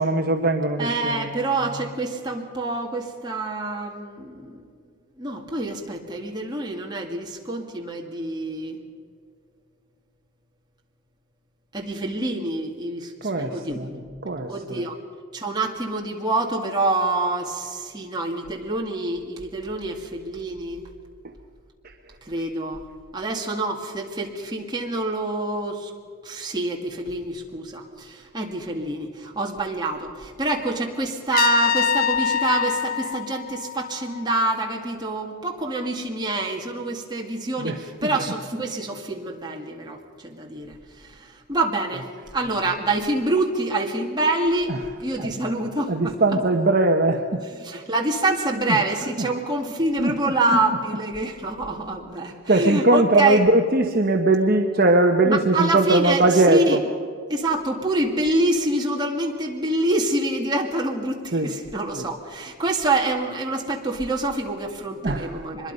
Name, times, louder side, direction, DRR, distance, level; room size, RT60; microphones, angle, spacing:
voice 1, 0.0-1.5 13.2-13.9 14.2-14.9 37.6-38.4 41.9-42.0 44.7-44.9 45.8-47.4 48.5-48.8 49.2-49.3 50.0-50.5 50.9-51.0 52.5-56.8 61.3-61.6 62.0-62.1 65.0-65.4, right 2 dB, 40° right, 3 dB, 1.0 m, -21 dB
voice 2, 0.8-4.6 5.2-8.8 11.7-14.1 14.5-15.0 15.3-20.9 22.2-22.8 23.1-25.9 26.2-42.1 42.3-46.4 47.5-53.4 55.2-56.8 57.3-65.7, right 2 dB, 20° right, 0 dB, 2.2 m, -26 dB
Trumpet, 31.3-34.3, left 8 dB, 40° left, 0.5 m, -24 dB
24.0 x 22.0 x 5.4 m, 2.2 s
head